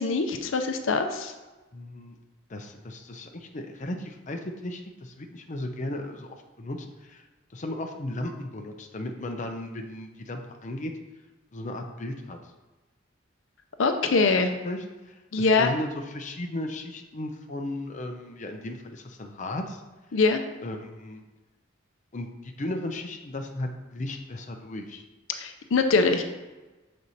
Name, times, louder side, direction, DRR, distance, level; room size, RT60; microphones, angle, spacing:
voice 1, 0.0-1.3 13.8-14.5 15.3-15.7 20.1-20.4 25.4-26.2, left 4 dB, 80° left, 6 dB, 0.6 m, -23 dB
voice 2, 1.7-2.1 2.5-7.2 7.5-10.9 11.5-12.4 14.6-19.8 20.6-21.2 22.1-25.0, left 1 dB, 40° left, 3 dB, 0.6 m, -35 dB
6.6 x 4.3 x 4.1 m, 1.2 s
head